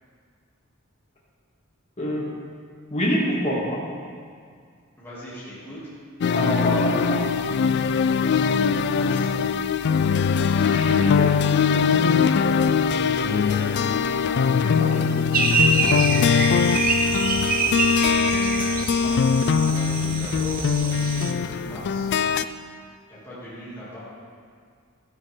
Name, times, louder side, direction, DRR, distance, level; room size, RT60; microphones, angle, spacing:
voice 1, 2.0-2.3 2.9-3.8 6.3-7.2 10.7-11.4 14.6-15.1 19.0-19.2, equal, 35° left, -6 dB, 2.8 m, -26 dB
voice 2, 5.0-5.8 8.3-9.3 12.7-13.8 17.5-18.2 19.6-22.1 23.1-24.0, left 1 dB, 10° left, -10 dB, 3.0 m, -40 dB
sound 1, 6.2-22.4, left 6 dB, 55° left, 0.4 m, -21 dB
sound 2, 15.3-21.3, right 3 dB, 45° right, 1.0 m, -25 dB
13.0 x 11.5 x 3.8 m, 2.1 s
head